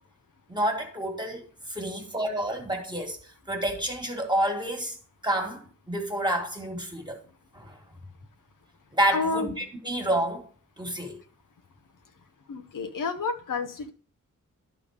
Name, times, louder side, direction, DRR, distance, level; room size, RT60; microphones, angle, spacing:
voice 1, 0.5-5.0 5.2-7.2 7.5-7.8 8.9-10.5 10.8-11.2, right 1 dB, 15° right, 1.6 m, -29 dB
voice 2, 9.1-9.5 12.5-13.9, left 4 dB, 75° left, 0.7 m, -30 dB
11.5 x 3.8 x 4.9 m
wide cardioid pair, 90°, 32 cm